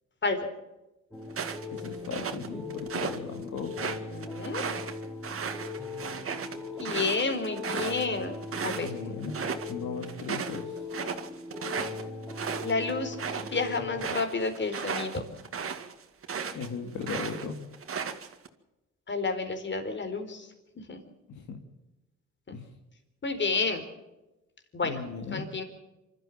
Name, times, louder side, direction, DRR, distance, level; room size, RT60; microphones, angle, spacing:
sound 1, 1.1-14.1, left 3 dB, ahead, 4.8 m, -40 dB
sound 2, 1.3-3.2 3.6-8.9 9.2-9.7 10.0-16.7 17.0-18.5, right 6 dB, 45° right, 2.2 m, -35 dB
voice 1, 1.7-3.8 8.8-9.4 9.7-10.9 16.5-17.6 21.3-21.6 22.5-22.7 24.8-25.5, left 5 dB, 75° left, 3 dB, 2.5 m, -37 dB
voice 2, 3.8-4.6 6.8-8.3 8.6-9.0 12.6-13.2 13.4-15.2 19.1-20.5 20.8-21.0 23.2-23.8 24.7-25.0 25.3-25.6, left 3 dB, 40° left, 7 dB, 4.1 m, -30 dB
26.0 x 13.5 x 7.4 m, 1.0 s
cardioid pair, 90°, 30 cm